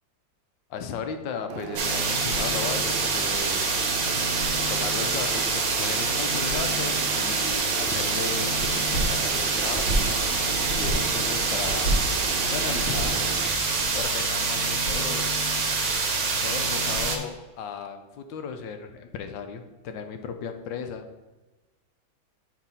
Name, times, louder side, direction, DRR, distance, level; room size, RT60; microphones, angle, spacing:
voice 1, 0.7-3.7 4.7-8.7 9.0-10.4 10.8-11.9 12.4-13.2 13.9-15.3 16.4-21.0, left 6 dB, 80° left, 7 dB, 1.3 m, -35 dB
sound 1, 1.5-13.5, right 7 dB, 85° right, 1.4 m, -37 dB
sound 2, 1.8-17.2, right 4 dB, 70° right, 1.7 m, -26 dB
sound 3, 8.8-14.0, right 1 dB, 45° left, 2.6 m, -31 dB
7.3 x 3.4 x 5.5 m, 1.1 s
omnidirectional pair, 2.1 m